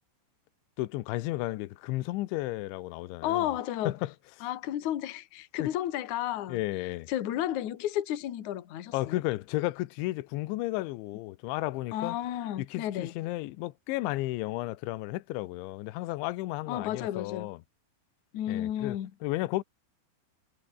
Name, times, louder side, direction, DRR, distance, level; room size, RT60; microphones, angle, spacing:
voice 1, 0.8-3.5 3.9-4.1 5.6-5.7 6.5-7.1 8.9-12.2 12.6-17.6 18.5-19.0 19.2-19.6, left 18 dB, 80° left, 3.2 m, -33 dB
voice 2, 3.2-4.0 4.4-6.6 7.1-9.2 11.9-13.1 16.7-17.5 18.3-19.1, left 12 dB, 55° left, 2.3 m, -32 dB
omnidirectional pair, 5.6 m